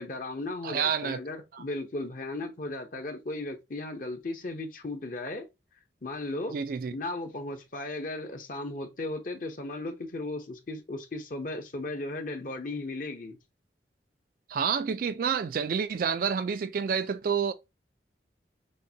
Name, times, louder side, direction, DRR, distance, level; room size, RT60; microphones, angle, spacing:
voice 1, 0.0-5.5 6.0-6.6 6.9-13.4, left 2 dB, 50° left, 0.7 m, -36 dB
voice 2, 0.6-1.2 1.5-1.6 6.5-6.9 14.5-17.5, right 6 dB, 55° right, 0.3 m, -29 dB
6.3 x 2.2 x 2.7 m
head